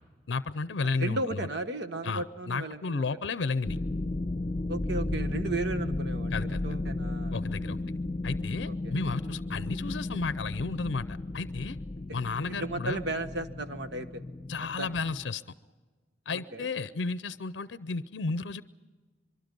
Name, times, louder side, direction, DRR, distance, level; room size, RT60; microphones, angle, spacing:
voice 1, 0.3-1.5 2.0-3.8 6.3-6.6 7.3-7.8 8.2-11.8 12.1-13.0 14.5-15.4 16.3-18.6, left 4 dB, 75° left, 14 dB, 0.6 m, -33 dB
voice 2, 1.0-3.0 4.7-6.3 6.6-7.4 8.7-8.9 12.5-14.2 14.8-14.9 16.3-16.7, right 2 dB, 65° right, 9 dB, 1.3 m, -35 dB
sound 1, 3.6-15.2, left 2 dB, 30° left, 0.7 m, -34 dB
24.5 x 23.5 x 5.3 m, 1.4 s
head